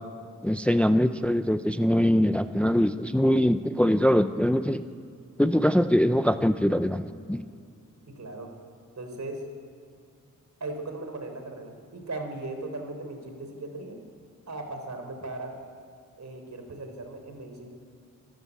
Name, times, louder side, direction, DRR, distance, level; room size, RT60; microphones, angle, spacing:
voice 1, 0.4-4.8 5.4-7.5, equal, 5° left, 10 dB, 0.6 m, -23 dB
voice 2, 8.1-8.5 9.0-9.4 10.6-14.0 14.5-15.5 16.2-17.7, right 2 dB, 60° right, 5 dB, 3.9 m, -38 dB
26.0 x 13.0 x 8.4 m, 2.3 s
wide cardioid pair, 95°, 32 cm